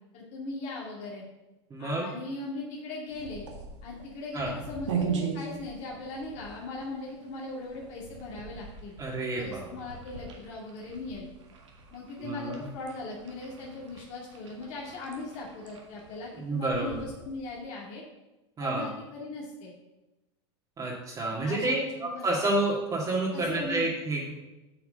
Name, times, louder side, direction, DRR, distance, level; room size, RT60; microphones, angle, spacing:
voice 1, 0.1-1.2 1.8-3.5 3.8-8.9 9.4-11.3 11.9-18.0 18.6-19.7 21.4-22.3 23.3-23.9, left 2 dB, 50° left, -4 dB, 2.1 m, -39 dB
voice 2, 1.7-2.1 4.3-4.5 9.0-9.7 12.2-12.6 16.4-17.0 18.6-18.9 20.8-24.2, right 2 dB, 25° right, -5 dB, 2.0 m, -29 dB
sound 1, 3.1-17.6, right 6 dB, 90° right, 1.8 m, -40 dB
7.5 x 4.7 x 6.7 m, 1.0 s
hypercardioid pair, 110°, 15 cm